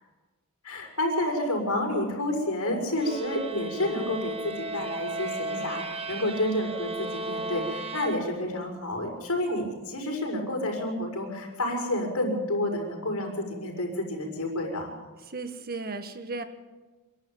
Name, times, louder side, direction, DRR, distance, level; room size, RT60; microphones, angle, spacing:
voice 1, 0.6-14.9, left 1 dB, 85° left, 1 dB, 6.2 m, -29 dB
sound 1, 3.0-8.6, right 2 dB, 25° right, 1.4 m, -35 dB
voice 2, 15.3-16.4, right 3 dB, 45° right, 8 dB, 1.7 m, -35 dB
27.0 x 12.0 x 9.0 m, 1.3 s
head